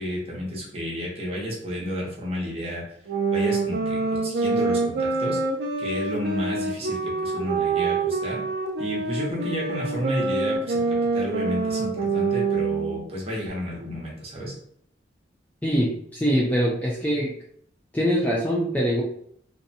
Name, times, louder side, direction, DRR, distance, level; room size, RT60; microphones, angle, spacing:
voice 1, 0.0-3.0 3.3-5.4 5.8-8.4 8.8-14.5, equal, 35° right, -3 dB, 0.8 m, -31 dB
sound 1, 3.1-13.0, right 4 dB, 60° right, 0.4 m, -26 dB
voice 2, 15.6-17.3 17.9-19.0, equal, 10° left, -4 dB, 0.3 m, -23 dB
2.6 x 2.1 x 2.6 m, 0.66 s
head